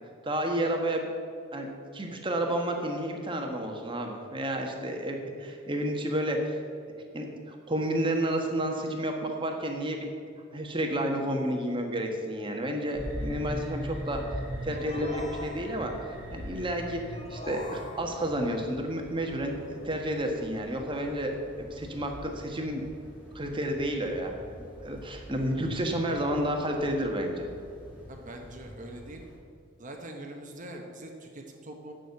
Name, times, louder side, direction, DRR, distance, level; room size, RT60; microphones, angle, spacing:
voice 1, 0.2-1.1 1.5-1.7 1.9-6.6 7.1-10.1 10.5-14.2 14.6-15.9 16.3-17.0 17.3-22.8 23.3-24.3 24.8-27.5, right 1 dB, 25° right, 3 dB, 1.3 m, -30 dB
sound 1, 12.9-29.4, equal, 10° right, 2.8 m, -42 dB
sound 2, 14.7-16.0 17.1-18.4, left 2 dB, 35° left, 1.2 m, -42 dB
voice 2, 28.1-29.2 29.8-31.9, right 1 dB, 40° right, 3 dB, 1.0 m, -43 dB
9.3 x 6.4 x 8.2 m, 2.4 s
head